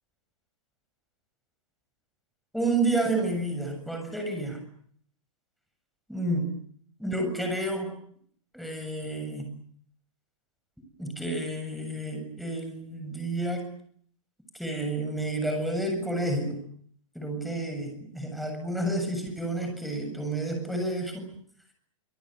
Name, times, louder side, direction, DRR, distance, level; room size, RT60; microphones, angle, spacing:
voice 1, 2.5-4.6 6.1-6.5 7.0-7.9 8.5-9.5 11.0-13.7 14.5-16.6 17.1-21.3, right 2 dB, ahead, 5 dB, 7.4 m, -30 dB
27.5 x 25.5 x 8.0 m, 0.64 s
hypercardioid pair, 155°, 17 cm